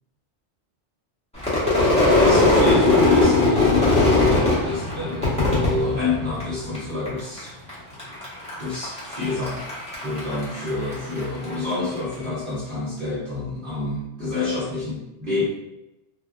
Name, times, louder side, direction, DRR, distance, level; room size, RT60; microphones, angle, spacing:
Crowd / Fireworks, 1.4-6.8 7.1-7.7 8.0-11.5, left 2 dB, 5° left, 0.9 m, -19 dB
voice 1, 1.9-7.5 8.6-9.7 10.0-15.4, left 3 dB, 55° right, -8 dB, 0.9 m, -28 dB
3.7 x 2.1 x 2.4 m, 0.90 s
omnidirectional pair, 1.2 m